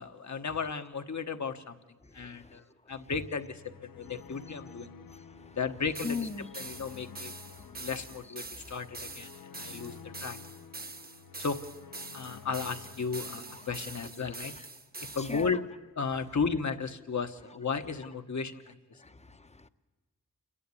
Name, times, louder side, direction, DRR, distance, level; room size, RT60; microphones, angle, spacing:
voice 1, 0.0-1.8 2.1-3.6 3.9-4.9 5.6-6.3 6.6-7.3 7.6-10.4 11.4-11.6 12.1-14.5 15.1-15.6 16.0-18.6 18.9-19.0, left 5 dB, 55° left, 7 dB, 1.2 m, -34 dB
voice 2, 2.2-2.6 5.1-5.6 6.0-6.5 7.5-7.9 8.6-8.7 15.0-15.5 19.0-19.7, left 5 dB, 20° left, 11 dB, 0.8 m, -40 dB
sound 1, 3.3-14.6, left 7 dB, 90° left, 0.8 m, -51 dB
sound 2, 5.9-15.5, right 3 dB, 25° right, 0.8 m, -44 dB
28.5 x 11.5 x 8.4 m, 1.3 s
cardioid pair, 55°, 34 cm